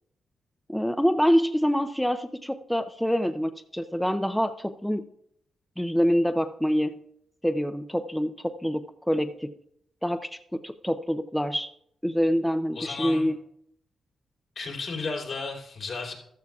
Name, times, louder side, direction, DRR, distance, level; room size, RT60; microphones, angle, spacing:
voice 1, 0.7-5.0 5.8-7.0 7.4-9.5 10.0-11.7 12.0-13.4, equal, 5° left, 8 dB, 0.5 m, -26 dB
voice 2, 12.8-13.3 14.6-16.1, left 4 dB, 65° left, -2 dB, 3.5 m, -33 dB
14.0 x 13.0 x 2.4 m, 0.73 s
cardioid pair, 70°, 0 cm